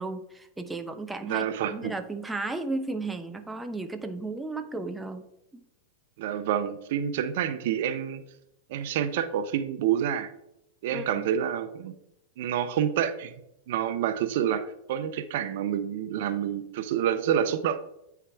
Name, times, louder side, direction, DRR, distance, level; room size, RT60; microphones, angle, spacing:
voice 1, 0.0-5.2 5.5-5.6 10.9-11.3, right 2 dB, 10° right, 8 dB, 0.6 m, -34 dB
voice 2, 1.2-1.9 6.2-8.2 8.7-10.3 10.8-11.9 12.4-13.3 13.7-17.8, right 9 dB, 60° right, 11 dB, 0.6 m, -28 dB
8.6 x 4.7 x 3.4 m, 0.84 s
hypercardioid pair, 110°, 0 cm